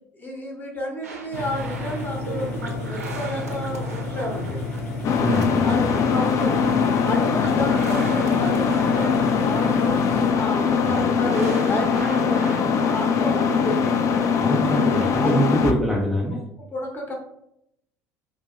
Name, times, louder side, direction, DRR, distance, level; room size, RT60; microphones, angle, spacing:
voice 1, 0.1-4.6 5.6-6.7 7.0-13.9 15.2-15.4 16.3-17.1, left 1 dB, 25° left, 0 dB, 0.9 m, -31 dB
sound 1, 1.0-15.1, right 3 dB, 80° right, 0.4 m, -38 dB
sound 2, 1.3-10.3, left 2 dB, 80° left, 0.6 m, -31 dB
sound 3, 5.0-15.7, left 6 dB, 40° left, 0.3 m, -21 dB
voice 2, 5.2-5.8 10.9-11.0 14.4-16.4, equal, ahead, -4 dB, 0.6 m, -24 dB
3.7 x 2.7 x 2.4 m, 0.77 s
figure-of-eight pair, 60°, 8 cm